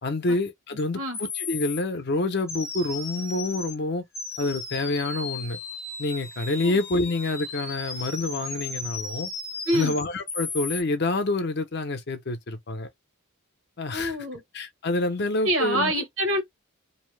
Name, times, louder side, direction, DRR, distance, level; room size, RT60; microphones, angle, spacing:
voice 1, 0.0-4.0 4.4-5.6 6.0-9.3 9.7-12.9 13.8-14.2 14.5-15.9, left 2 dB, 50° left, 0.6 m, -27 dB
sound 1, 0.8-0.9 1.1-1.8 2.5-3.8 4.1-10.8, left 4 dB, 10° left, 0.5 m, -35 dB
voice 2, 9.6-9.9 13.9-14.4 15.4-16.4, equal, 65° right, 1.1 m, -26 dB
2.7 x 2.0 x 3.2 m
head